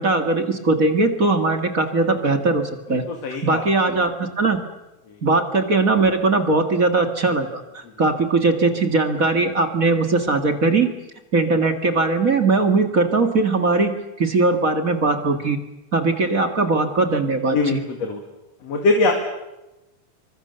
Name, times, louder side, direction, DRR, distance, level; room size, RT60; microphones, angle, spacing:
voice 1, 0.0-3.0 3.4-4.6 5.2-10.9 11.3-13.9 14.2-15.6 15.9-17.8, right 3 dB, 30° right, 6 dB, 1.9 m, -20 dB
voice 2, 2.9-3.7 17.5-18.2 18.6-19.1, left 3 dB, 60° left, 3 dB, 3.5 m, -22 dB
28.0 x 24.5 x 6.9 m, 0.99 s
omnidirectional pair, 3.4 m